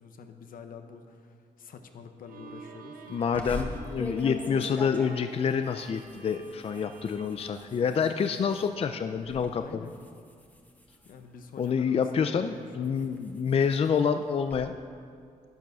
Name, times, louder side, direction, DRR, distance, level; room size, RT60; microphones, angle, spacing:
voice 1, 0.0-3.0 9.5-10.0 11.0-13.2, left 5 dB, 80° left, 6 dB, 1.0 m, -47 dB
Bowed string instrument, 2.3-8.5, right 6 dB, 85° right, 1.0 m, -49 dB
voice 2, 3.1-9.9 11.6-14.7, left 6 dB, 45° left, 8 dB, 0.4 m, -27 dB
sound 1, 3.3-8.7 9.1-9.5 9.9-11.9 12.4-14.6, left 1 dB, 10° left, 1.2 m, -41 dB
10.5 x 9.4 x 6.2 m, 2.2 s
cardioid pair, 105°, 14 cm